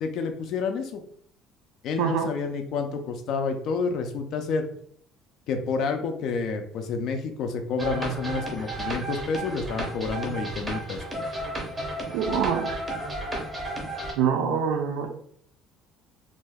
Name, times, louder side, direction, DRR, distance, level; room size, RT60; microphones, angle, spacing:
voice 1, 0.0-1.0 1.8-4.7 5.5-11.0, left 4 dB, 50° left, 6 dB, 0.3 m, -29 dB
voice 2, 2.0-2.3 12.1-12.8 14.1-15.1, right 7 dB, 85° right, 4 dB, 0.4 m, -25 dB
sound 1, 7.8-14.1, right 1 dB, 15° right, 0.6 m, -33 dB
2.6 x 2.2 x 3.3 m, 0.62 s
cardioid pair, 175°, 0 cm